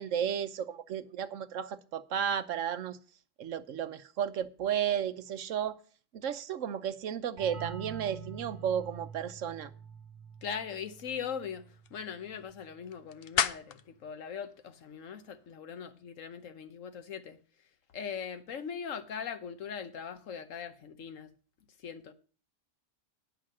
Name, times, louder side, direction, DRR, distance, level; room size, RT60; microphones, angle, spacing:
voice 1, 0.0-3.0 3.4-5.8 6.1-9.7, right 9 dB, 80° right, 1.1 m, -33 dB
sound 1, 7.4-12.8, right 5 dB, 35° right, 1.5 m, -47 dB
voice 2, 10.4-17.4 17.9-21.3 21.8-22.1, left 7 dB, 85° left, 1.3 m, -40 dB
sound 2, 10.4-15.6, left 8 dB, 55° left, 0.7 m, -39 dB
10.0 x 5.6 x 7.6 m
omnidirectional pair, 1.3 m